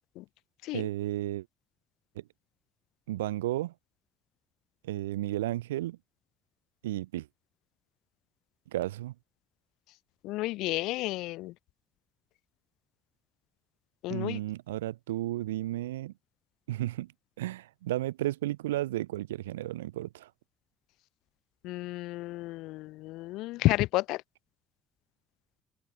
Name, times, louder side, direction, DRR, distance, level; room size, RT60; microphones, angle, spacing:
voice 1, 0.7-1.5 3.1-3.7 4.8-6.0 6.8-7.3 8.7-9.1 14.1-16.1 16.7-17.1 17.4-20.3, right 15 dB, 75° right, 0.5 m, -33 dB
voice 2, 10.2-11.5 14.0-14.4 21.6-24.2, left 19 dB, 65° left, 0.6 m, -31 dB
open air
figure-of-eight pair, 50°, 0 cm